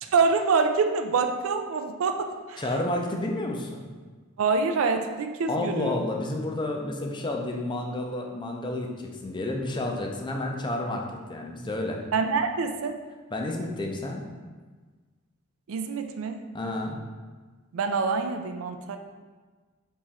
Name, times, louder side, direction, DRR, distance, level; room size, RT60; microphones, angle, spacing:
voice 1, 0.0-2.6 4.4-5.9 12.1-12.9 15.7-16.4 17.7-19.0, right 4 dB, 65° right, 6 dB, 0.4 m, -26 dB
voice 2, 2.6-3.9 5.5-8.9 9.2-11.0 11.3-12.0 13.3-14.2 16.5-17.0, left 1 dB, 20° left, 1 dB, 0.4 m, -30 dB
3.6 x 3.0 x 4.1 m, 1.4 s
head